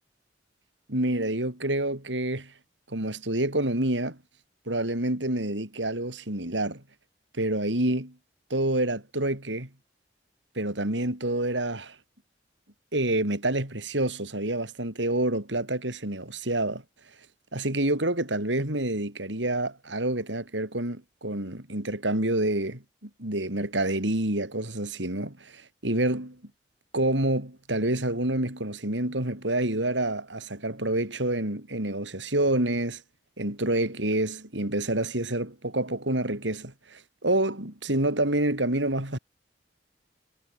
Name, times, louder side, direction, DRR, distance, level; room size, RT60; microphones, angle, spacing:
voice 1, 0.9-2.5 2.9-4.2 4.7-6.8 7.3-8.1 8.5-9.7 10.6-12.0 12.9-16.8 17.5-26.4 26.9-33.0 33.4-39.2, right 1 dB, 80° right, 5.4 m, -28 dB
head